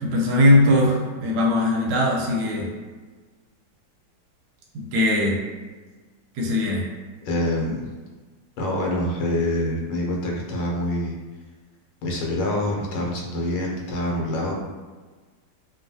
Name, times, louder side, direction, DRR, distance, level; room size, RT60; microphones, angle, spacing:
voice 1, 0.0-2.7 4.9-5.4 6.3-6.9, left 1 dB, 70° right, -1 dB, 1.1 m, -20 dB
voice 2, 7.2-7.9 8.6-11.2 12.0-14.5, left 1 dB, 80° left, -1 dB, 1.3 m, -26 dB
3.0 x 2.3 x 2.7 m, 1.3 s
omnidirectional pair, 2.0 m